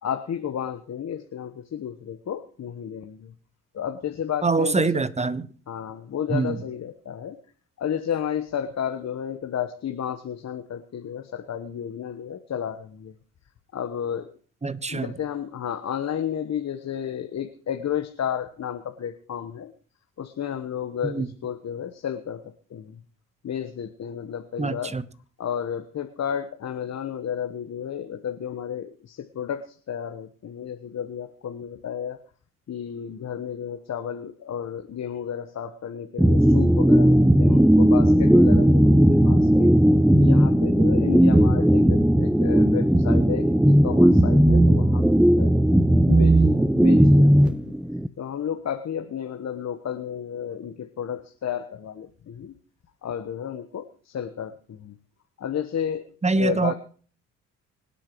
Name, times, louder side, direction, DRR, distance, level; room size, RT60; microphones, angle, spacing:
voice 1, 0.0-3.3 3.7-4.9 5.7-7.4 7.8-13.1 13.7-14.3 14.9-19.7 20.2-22.4 22.7-23.0 23.4-25.0 25.4-32.2 32.7-39.7 40.2-45.5 46.1-47.7 48.2-52.5 53.0-55.0 55.4-56.7, left 8 dB, 45° left, 8 dB, 1.2 m, -32 dB
voice 2, 4.4-5.5 6.3-6.6 14.6-15.1 21.0-21.3 24.6-25.0 56.2-56.7, right 3 dB, 20° right, 15 dB, 1.1 m, -24 dB
sound 1, 36.2-48.1, right 1 dB, 5° right, 0.6 m, -17 dB
25.0 x 8.5 x 3.1 m, 0.43 s
hypercardioid pair, 55°, 37 cm